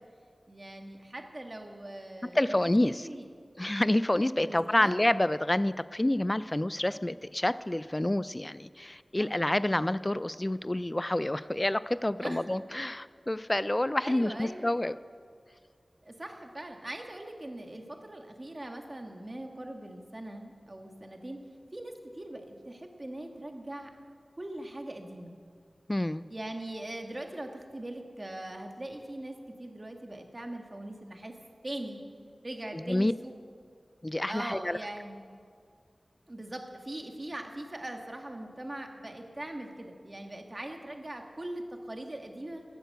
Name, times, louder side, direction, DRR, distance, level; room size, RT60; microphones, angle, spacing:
voice 1, 0.5-2.6 3.0-3.2 4.4-5.0 9.2-9.3 12.2-12.4 14.0-14.8 16.0-21.4 21.7-23.9 24.4-25.3 26.3-31.3 31.6-32.0 32.4-33.3 34.3-35.2 36.3-42.6, right 1 dB, 35° right, 3 dB, 1.8 m, -41 dB
voice 2, 2.3-3.1 3.6-15.0 25.9-26.2 32.7-33.1 34.0-34.8, left 1 dB, 25° left, 16 dB, 0.4 m, -28 dB
13.5 x 9.3 x 7.9 m, 2.1 s
cardioid pair, 40°, 0 cm